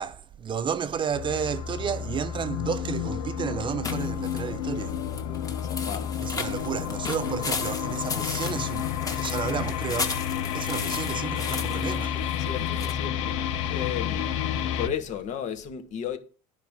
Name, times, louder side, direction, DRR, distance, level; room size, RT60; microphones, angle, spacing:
voice 1, 0.0-5.0 6.2-12.3, right 7 dB, 30° right, 0.8 m, -32 dB
sound 1, 1.1-14.9, left 9 dB, 85° left, 1.1 m, -30 dB
sound 2, 3.8-12.9, left 4 dB, 20° left, 2.1 m, -36 dB
voice 2, 5.3-6.1 12.5-13.4 13.7-14.3 14.8-16.2, left 9 dB, 50° left, 2.0 m, -34 dB
10.5 x 5.2 x 7.4 m
supercardioid pair, 105°, 16 cm